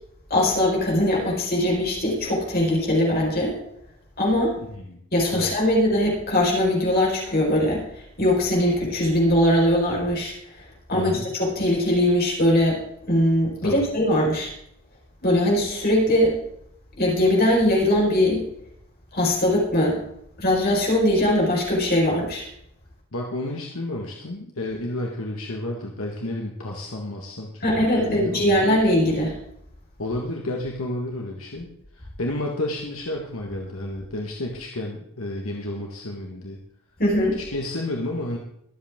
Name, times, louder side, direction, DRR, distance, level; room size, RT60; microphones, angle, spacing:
voice 1, 0.3-3.6 4.2-4.5 5.1-10.3 10.9-12.8 13.1-14.5 15.2-16.4 17.0-18.4 19.1-20.0 20.4-22.5 27.6-29.4 37.0-37.4, left 1 dB, 45° left, -3 dB, 4.8 m, -21 dB
voice 2, 4.6-5.0 5.3-5.5 10.9-11.3 13.6-13.9 23.1-28.7 30.0-31.7 31.9-36.6 37.5-38.4, left 1 dB, 75° left, -1 dB, 1.7 m, -31 dB
23.5 x 7.9 x 3.7 m, 0.74 s
head